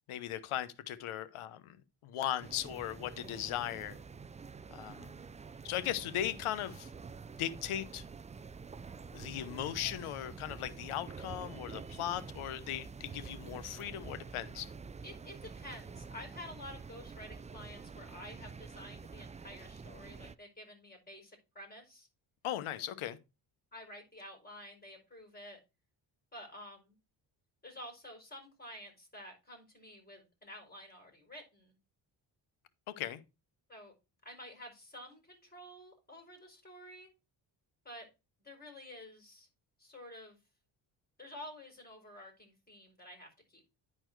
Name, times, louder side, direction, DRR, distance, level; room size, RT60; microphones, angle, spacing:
voice 1, 0.1-4.0 4.7-5.1 5.6-6.9 7.4-8.0 9.1-14.7 22.4-23.2 33.0-33.2, left 11 dB, 80° left, 1.0 m, -38 dB
sound 1, 2.4-20.3, right 5 dB, 15° right, 0.3 m, -48 dB
voice 2, 15.0-22.1 22.8-22.9 23.7-25.6 26.3-27.0 27.6-31.8 33.7-33.9 34.2-37.1 37.8-38.1 38.4-39.5 39.8-40.4 41.2-43.7, left 1 dB, 20° left, 4.9 m, -50 dB
10.0 x 4.5 x 4.6 m
supercardioid pair, 70°, 50 cm